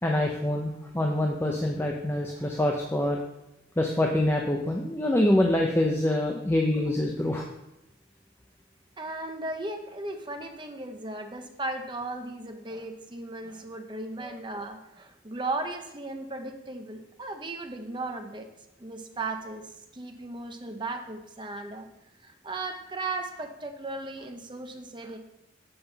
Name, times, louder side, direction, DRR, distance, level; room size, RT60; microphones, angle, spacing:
voice 1, 0.0-3.2 3.8-7.4 14.2-14.3, left 1 dB, 10° left, 1 dB, 0.6 m, -25 dB
voice 2, 9.0-18.5 18.8-19.6 19.9-21.9 22.2-25.2, right 2 dB, 25° right, 4 dB, 0.8 m, -36 dB
7.9 x 4.6 x 5.6 m, 0.89 s
head